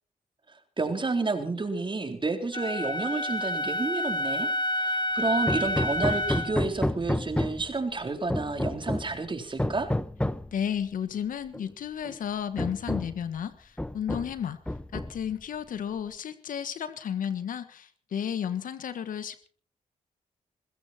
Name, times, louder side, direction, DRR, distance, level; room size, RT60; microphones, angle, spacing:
voice 1, 0.8-4.5 4.8-9.9, right 3 dB, 35° right, 5 dB, 3.8 m, -30 dB
Wind instrument woodwind instrument, 2.5-6.6, left 1 dB, 35° left, 2.8 m, -29 dB
Hammer, 5.5-7.7 8.3-9.2 9.6-10.5 11.5-11.6 12.0-12.2 12.6-13.2 13.8-14.4 14.7-15.3, left 1 dB, 10° left, 1.0 m, -30 dB
voice 2, 10.5-14.6 14.9-19.5, left 8 dB, 80° left, 12 dB, 1.5 m, -33 dB
20.5 x 15.5 x 4.4 m, 0.44 s
cardioid pair, 60°, 14 cm